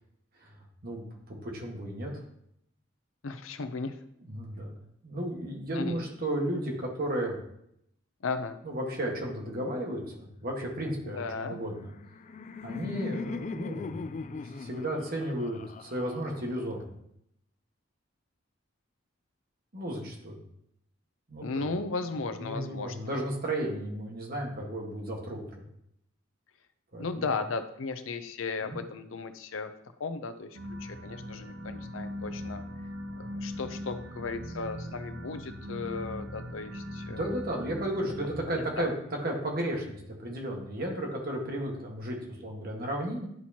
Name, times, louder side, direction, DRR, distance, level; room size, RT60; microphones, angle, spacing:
voice 1, 0.8-2.1 4.2-4.8 5.0-7.4 8.6-11.9 12.6-16.8 19.7-20.4 21.3-21.7 22.4-25.7 26.9-27.2 28.6-28.8 37.1-38.9 39.2-43.3, right 1 dB, 50° right, 0 dB, 1.5 m, -34 dB
voice 2, 3.2-4.0 5.7-6.0 8.2-8.6 11.0-11.6 21.4-22.9 27.0-29.7 30.0-32.6 33.2-37.4 38.2-38.9, left 4 dB, 85° left, 10 dB, 0.6 m, -36 dB
Laughter, 11.8-16.8, left 4 dB, 40° left, 0.3 m, -40 dB
sound 1, 30.5-38.8, equal, 80° right, 0.8 m, -40 dB
11.0 x 4.4 x 2.9 m, 0.74 s
head